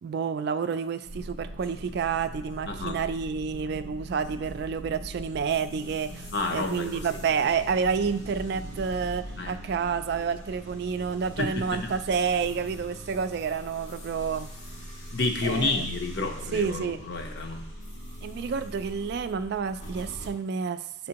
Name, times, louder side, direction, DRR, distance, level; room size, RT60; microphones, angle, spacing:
voice 1, 0.0-14.5 15.4-15.8 16.5-17.0 18.2-21.1, right 6 dB, 55° right, 11 dB, 0.3 m, -29 dB
sound 1, 1.0-20.3, equal, 85° left, 2.0 m, -41 dB
voice 2, 2.7-3.0 6.3-7.2 9.3-9.6 11.4-11.8 15.1-17.7, left 3 dB, 60° left, 4 dB, 0.8 m, -30 dB
8.4 x 4.2 x 2.9 m, 0.77 s
head